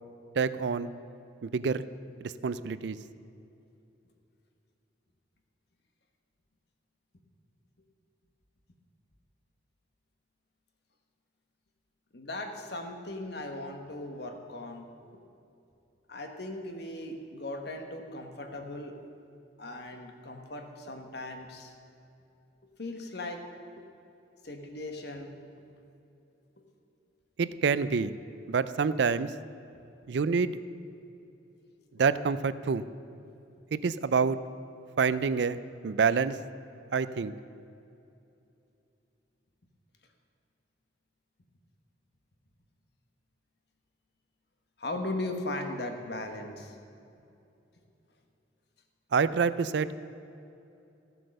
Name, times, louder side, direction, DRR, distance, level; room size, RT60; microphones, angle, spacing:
voice 1, 0.4-0.9 1.4-1.8 2.2-3.0 27.4-28.1 28.5-29.3 30.1-30.6 32.0-32.9 33.7-34.4 35.0-36.4 36.9-37.3 49.1-50.0, right 5 dB, 65° right, 15 dB, 0.4 m, -27 dB
voice 2, 12.1-14.9 15.1-15.2 16.1-19.0 19.6-21.7 22.8-23.5 23.8-23.9 24.4-25.4 44.8-46.8, left 2 dB, 60° left, 4 dB, 1.3 m, -38 dB
14.0 x 7.7 x 6.5 m, 2.8 s
head